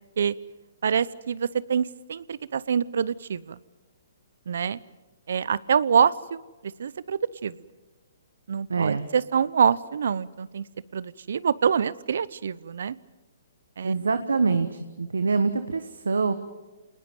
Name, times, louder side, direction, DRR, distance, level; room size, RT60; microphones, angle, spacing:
voice 1, 0.8-3.6 4.5-4.8 5.3-7.5 8.5-10.7 10.9-13.0 13.8-13.9, right 7 dB, 70° right, 20 dB, 0.8 m, -25 dB
voice 2, 8.7-9.1 13.8-16.3, right 4 dB, 85° right, 10 dB, 1.3 m, -25 dB
28.0 x 20.0 x 7.9 m, 1.2 s
hypercardioid pair, 135°, 0 cm